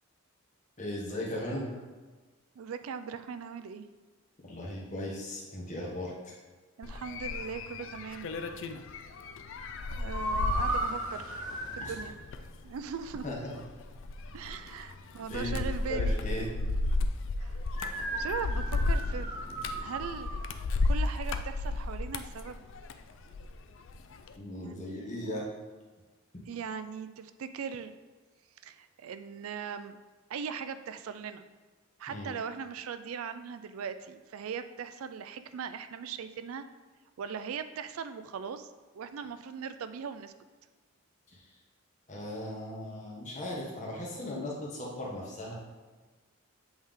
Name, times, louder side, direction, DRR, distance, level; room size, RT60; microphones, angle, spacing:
voice 1, 0.8-1.8 4.4-6.3 11.8-11.9 13.2-13.6 15.3-15.6 15.9-16.5 24.4-25.4 26.3-26.4 32.1-32.3 41.3-41.5 42.1-45.5, left 1 dB, 35° left, -4 dB, 1.4 m, -37 dB
voice 2, 2.6-3.9 6.8-8.3 9.9-11.4 11.7-12.1 12.6-13.2 14.3-16.2 17.4-17.6 18.2-19.3 19.7-20.3 20.8-22.6 24.5-25.1 26.5-27.9 28.6-30.0 30.3-31.4 32.0-36.6 37.2-38.7 38.9-40.3, right 6 dB, 80° right, 11 dB, 0.4 m, -39 dB
sound 1, 6.8-23.5 23.9-24.3, left 2 dB, 60° left, 0.4 m, -33 dB
sound 2, 10.1-12.1 17.7-20.5, right 1 dB, 20° right, 1.6 m, -35 dB
7.9 x 3.6 x 3.6 m, 1.3 s
head